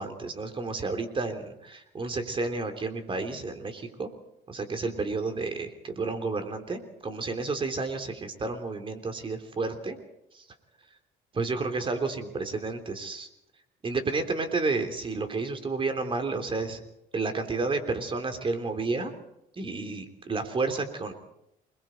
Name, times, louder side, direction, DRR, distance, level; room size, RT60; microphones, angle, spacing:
voice 1, 0.0-4.1 4.5-10.0 10.3-10.4 11.3-13.3 13.8-16.8 17.1-19.1 19.5-21.1, right 3 dB, 30° right, 6 dB, 3.5 m, -31 dB
28.0 x 21.5 x 4.6 m, 0.81 s
cardioid pair, 110°, 17 cm